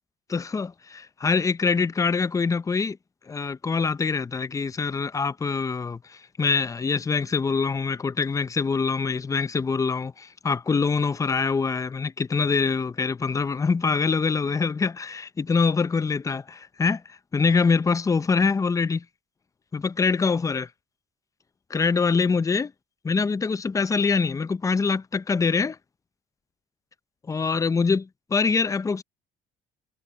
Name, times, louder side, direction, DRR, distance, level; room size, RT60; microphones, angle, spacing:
voice 1, 0.3-3.0 3.3-19.0 19.7-20.7 21.7-22.7 23.0-25.8 27.3-29.0, left 5 dB, 20° left, 0.5 m, -24 dB
cardioid pair, 110°, 17 cm